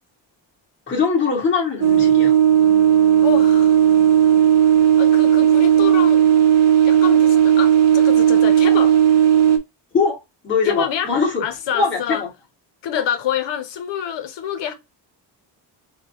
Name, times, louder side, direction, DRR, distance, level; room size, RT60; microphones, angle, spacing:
voice 1, 0.9-2.3 9.9-11.5 11.7-12.3, left 5 dB, 25° left, 1.8 m, -21 dB
sound 1, 1.8-9.6, right 9 dB, 35° right, 0.7 m, -14 dB
voice 2, 3.2-3.7 5.0-6.2 6.8-8.9 10.6-11.1 11.4-12.2 12.8-14.7, left 9 dB, 75° left, 0.8 m, -26 dB
4.0 x 2.2 x 4.0 m
cardioid pair, 170°, 43 cm